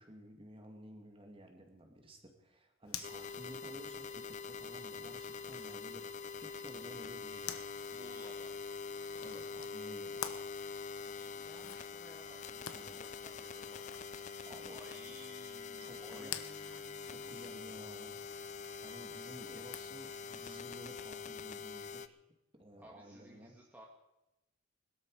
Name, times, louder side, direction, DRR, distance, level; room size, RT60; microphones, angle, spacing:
voice 1, 0.0-6.1 6.4-7.9 9.2-10.4 12.6-13.0 14.4-15.0 15.8-16.4 17.0-18.2 18.8-22.2 22.5-23.6, right 1 dB, 25° right, 3 dB, 2.3 m, -54 dB
Zipper (clothing), 2.8-20.2, left 9 dB, 75° left, 1.1 m, -51 dB
sound 1, 3.0-22.1, left 5 dB, 35° left, 0.5 m, -45 dB
voice 2, 7.9-8.5 11.1-14.1 14.3-17.6 19.4-19.6 22.8-23.9, right 1 dB, 10° right, -2 dB, 1.8 m, -58 dB
21.0 x 12.5 x 4.9 m, 0.94 s
head